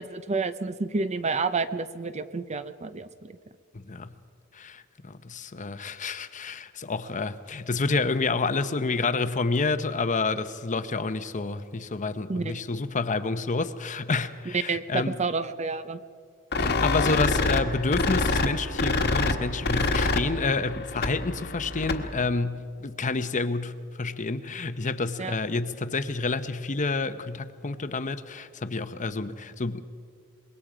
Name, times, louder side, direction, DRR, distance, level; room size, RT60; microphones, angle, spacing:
voice 1, 0.0-3.3 12.3-12.6 14.7-16.0 25.2-25.3, right 4 dB, 30° right, 12 dB, 0.6 m, -29 dB
voice 2, 3.7-4.1 4.5-15.2 16.6-29.8, left 3 dB, 35° left, 11 dB, 0.8 m, -29 dB
sound 1, 16.5-22.2, left 3 dB, 50° left, 1.4 m, -26 dB
25.0 x 21.5 x 5.0 m, 2.2 s
head